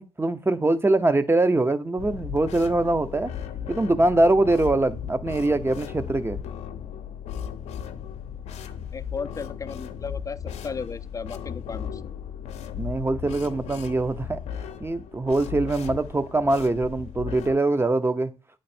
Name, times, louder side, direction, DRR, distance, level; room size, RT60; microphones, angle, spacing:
voice 1, 0.0-3.3 3.7-6.4 12.8-14.4 14.8-18.3, right 2 dB, 20° right, 0.7 m, -23 dB
sound 1, 2.0-17.5, left 8 dB, 85° left, 0.6 m, -36 dB
voice 2, 8.9-10.4 10.6-12.0, left 5 dB, 30° left, 0.4 m, -35 dB
8.7 x 3.2 x 4.3 m
cardioid pair, 65°, 11 cm